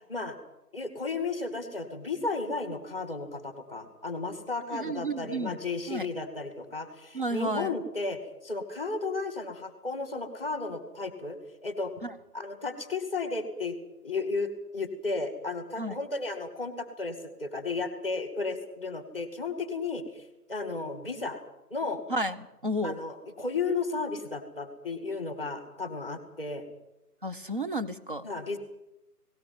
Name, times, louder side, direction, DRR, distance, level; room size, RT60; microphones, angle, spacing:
voice 1, 0.7-11.4 11.6-11.9 12.3-13.7 14.0-21.4 21.7-22.0 22.8-26.6 28.2-28.6, left 3 dB, 10° right, 9 dB, 1.5 m, -34 dB
voice 2, 4.7-5.5 5.9-6.1 7.1-7.7 12.0-12.1 15.8-16.0 22.1-23.0 27.2-28.3, right 1 dB, 35° right, 10 dB, 1.0 m, -32 dB
19.0 x 17.5 x 9.5 m, 0.90 s
hypercardioid pair, 180°, 47 cm